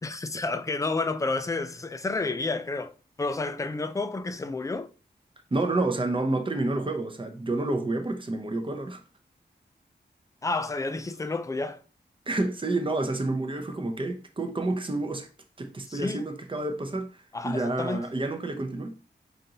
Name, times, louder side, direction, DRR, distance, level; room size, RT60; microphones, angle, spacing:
voice 1, 0.0-2.9 3.2-4.9 10.4-11.8 15.9-16.2 17.3-18.0, left 3 dB, 15° left, 0.3 m, -30 dB
voice 2, 5.5-9.0 12.3-15.3 15.6-19.0, right 2 dB, 25° right, 0.6 m, -29 dB
5.1 x 2.5 x 2.8 m
wide cardioid pair, 115°, 19 cm